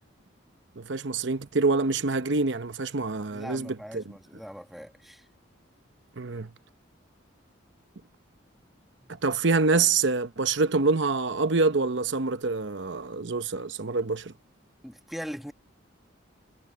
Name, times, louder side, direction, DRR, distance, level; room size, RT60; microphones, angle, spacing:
voice 1, 0.8-4.0 6.2-6.5 9.2-14.3, right 3 dB, 65° right, 0.9 m, -26 dB
voice 2, 3.3-5.3 9.0-9.1 14.8-15.5, equal, ahead, 1.2 m, -41 dB
head